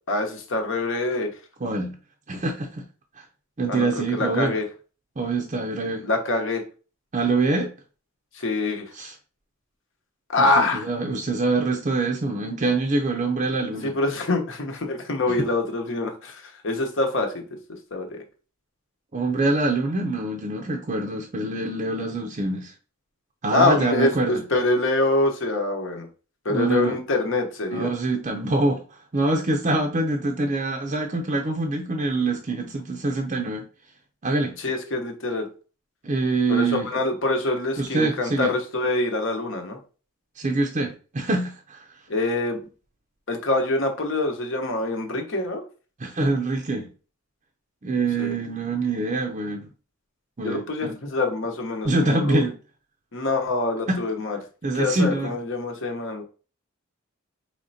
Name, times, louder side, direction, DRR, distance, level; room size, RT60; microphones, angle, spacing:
voice 1, 0.1-1.3 3.7-4.7 6.0-6.6 8.3-8.9 10.3-10.9 13.8-17.5 17.9-18.2 23.5-26.1 26.4-27.9 34.6-35.5 36.5-39.8 42.1-42.6 43.3-45.6 48.2-48.4 50.4-52.4 53.1-54.4 54.7-56.2, left 2 dB, 60° left, 0.9 m, -25 dB
voice 2, 1.6-1.9 2.3-2.8 3.6-4.6 5.2-6.1 7.1-7.7 9.0-9.1 10.4-14.0 19.1-22.7 23.4-24.4 26.5-27.0 27.7-28.8 29.1-33.6 34.2-34.5 36.0-36.9 37.8-38.5 40.4-41.8 46.0-46.9 47.8-49.7 50.4-51.0 51.8-52.5 53.9-54.0 54.6-55.3, right 2 dB, 35° right, 0.5 m, -25 dB
4.9 x 3.2 x 2.7 m
head